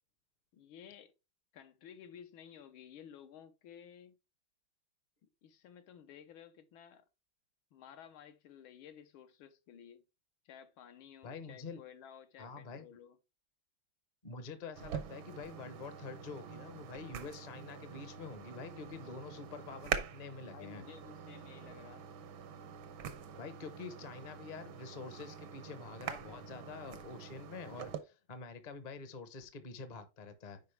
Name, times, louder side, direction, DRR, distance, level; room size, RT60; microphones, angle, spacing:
voice 1, 0.5-1.1 1.5-4.2 5.4-7.1 7.7-10.0 10.5-13.2 19.0-19.1 20.5-22.1, left 9 dB, 80° left, 1.7 m, -54 dB
voice 2, 11.2-11.8 12.4-12.9 14.2-20.8 23.4-30.6, left 4 dB, 35° left, 0.7 m, -47 dB
sound 1, 14.8-28.0, right 8 dB, 80° right, 1.6 m, -45 dB
9.6 x 4.8 x 3.3 m
omnidirectional pair, 2.2 m